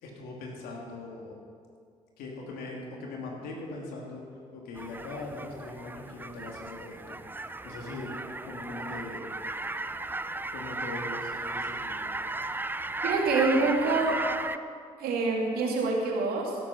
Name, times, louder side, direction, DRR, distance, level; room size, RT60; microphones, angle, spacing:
voice 1, 0.0-1.4 2.2-4.2 4.5-7.2 7.6-8.1 8.4-9.2 10.5-12.0, left 2 dB, 70° left, -1 dB, 2.6 m, -40 dB
sound 1, 4.8-14.6, right 2 dB, 10° right, 0.6 m, -35 dB
voice 2, 13.0-14.2 15.0-16.6, right 3 dB, 70° right, -1 dB, 2.4 m, -26 dB
16.5 x 8.5 x 5.7 m, 2.2 s
hypercardioid pair, 45°, 16 cm